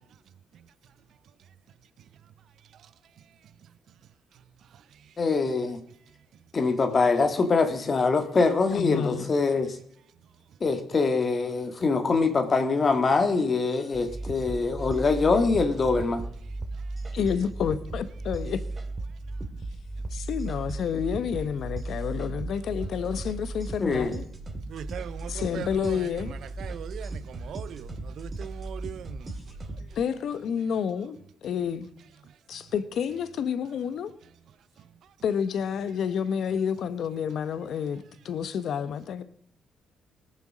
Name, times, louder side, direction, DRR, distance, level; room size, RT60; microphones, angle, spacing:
voice 1, 5.2-5.8 6.5-9.8 10.6-16.2 23.8-24.2, left 4 dB, 40° left, 1.6 m, -24 dB
voice 2, 8.7-9.3 17.1-18.6 20.1-24.2 25.3-26.4 30.0-31.2 31.4-31.9 32.5-34.1 35.2-39.2, left 7 dB, 70° left, 1.0 m, -29 dB
sound 1, 13.9-29.9, right 2 dB, 30° right, 2.4 m, -36 dB
voice 3, 24.7-26.0 26.6-29.3, right 9 dB, 70° right, 0.4 m, -39 dB
19.5 x 7.1 x 6.1 m
cardioid pair, 90°, 0 cm